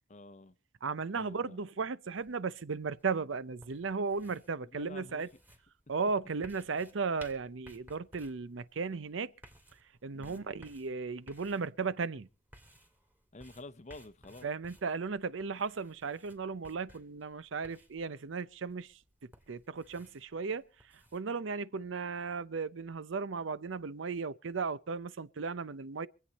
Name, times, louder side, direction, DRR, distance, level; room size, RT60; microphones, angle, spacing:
voice 1, 0.1-0.6 1.2-1.6 4.7-5.3 10.1-10.5 13.3-14.5, left 2 dB, 35° left, 0.8 m, -49 dB
voice 2, 0.8-5.3 5.9-9.3 10.0-12.3 14.4-19.0 19.5-20.6 21.1-26.1, right 4 dB, 70° right, 0.6 m, -36 dB
sound 1, 2.1-21.2, equal, 10° right, 2.1 m, -60 dB
25.5 x 8.6 x 4.1 m
head